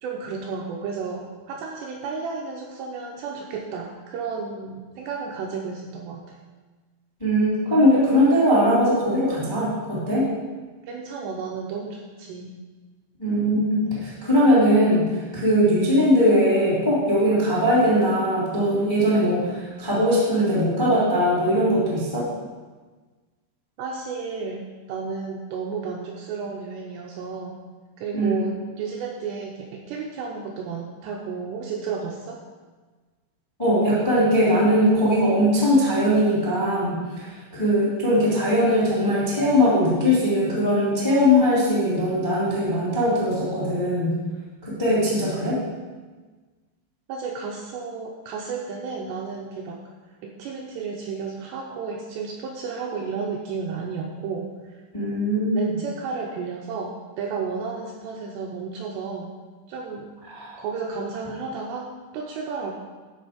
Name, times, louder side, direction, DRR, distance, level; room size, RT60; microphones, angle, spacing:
voice 1, 0.0-6.4 10.9-12.6 23.8-27.6 28.0-32.4 47.1-49.8 50.2-54.8 55.5-59.3 59.7-60.1 60.6-62.7, right 5 dB, 80° right, -1 dB, 2.6 m, -32 dB
voice 2, 7.2-10.2 13.2-22.3 28.1-28.4 33.6-44.1 44.6-45.6 54.9-55.6 60.3-60.6, equal, 10° left, -6 dB, 1.4 m, -20 dB
12.0 x 5.2 x 5.0 m, 1.3 s
omnidirectional pair, 5.6 m